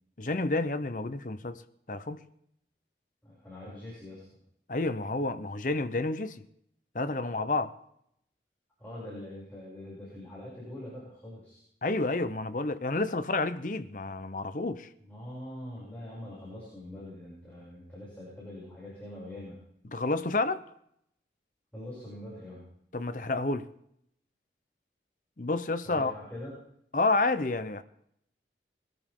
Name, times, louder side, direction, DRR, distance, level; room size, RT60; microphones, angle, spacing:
voice 1, 0.2-1.6 1.9-2.2 4.7-6.4 6.9-7.7 11.8-14.9 19.9-20.6 22.9-23.7 25.4-26.1 26.9-27.8, left 2 dB, 45° left, 0.8 m, -30 dB
voice 2, 3.2-4.2 8.8-11.6 15.0-19.6 21.7-22.7 25.8-26.5, left 1 dB, 10° left, 6.9 m, -43 dB
22.0 x 13.5 x 3.7 m
head